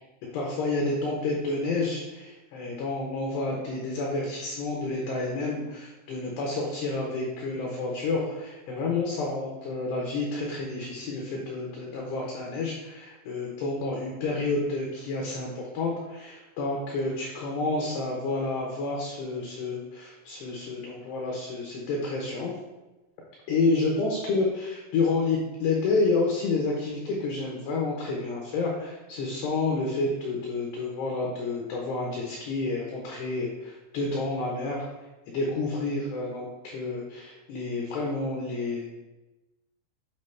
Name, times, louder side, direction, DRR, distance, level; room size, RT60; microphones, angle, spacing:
voice 1, 0.3-22.5 23.5-34.9 35.3-38.9, left 3 dB, 80° left, -2 dB, 2.4 m, -29 dB
8.1 x 4.6 x 3.2 m, 1.1 s
omnidirectional pair, 5.9 m